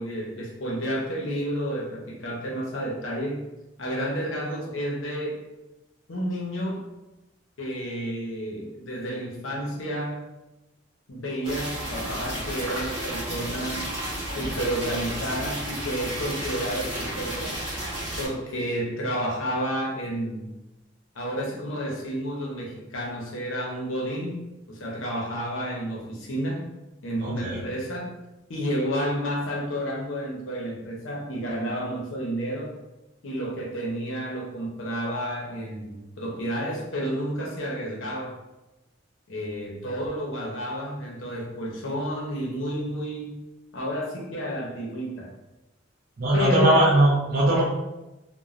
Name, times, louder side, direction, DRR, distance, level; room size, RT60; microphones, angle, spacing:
voice 1, 0.0-3.5 3.8-5.4 6.1-6.8 7.6-10.3 11.1-13.9 14.2-17.6 18.2-20.6 21.1-26.7 27.0-28.2 28.5-32.7 33.2-38.4 39.3-43.4 43.7-45.3 46.3-46.8, equal, 75° left, -1 dB, 0.7 m, -31 dB
sound 1, 11.4-18.3, right 1 dB, 25° right, 1.2 m, -32 dB
voice 2, 27.2-27.6 46.2-47.6, right 1 dB, 50° right, -6 dB, 0.5 m, -20 dB
3.0 x 2.1 x 2.4 m, 1.0 s
head